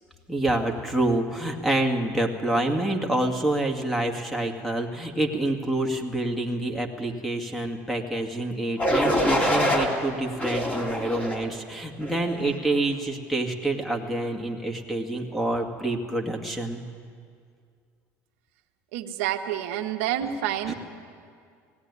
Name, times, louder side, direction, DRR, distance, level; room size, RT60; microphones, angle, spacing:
voice 1, 0.3-16.8 20.7-20.8, right 1 dB, ahead, 2 dB, 2.1 m, -27 dB
sound 1, 8.8-9.9 10.4-11.4 12.0-12.4, equal, 20° left, 3.3 m, -24 dB
voice 2, 18.9-20.7, right 11 dB, 90° right, 4 dB, 1.3 m, -28 dB
18.5 x 16.5 x 9.7 m, 2.2 s
supercardioid pair, 105°, 7 cm